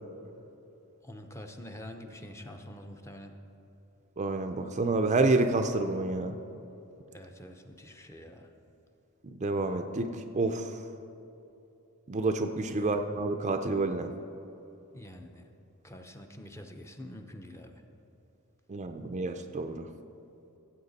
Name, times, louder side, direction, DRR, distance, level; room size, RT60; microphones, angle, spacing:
voice 1, 1.0-3.3 7.1-8.5 12.8-13.0 14.9-15.4 15.8-17.8, left 1 dB, 10° left, 4 dB, 0.7 m, -46 dB
voice 2, 4.2-6.4 9.2-10.1 10.3-10.8 12.1-14.1 18.7-19.8, right 2 dB, 30° right, 7 dB, 0.5 m, -28 dB
15.5 x 7.7 x 4.1 m, 2.9 s
head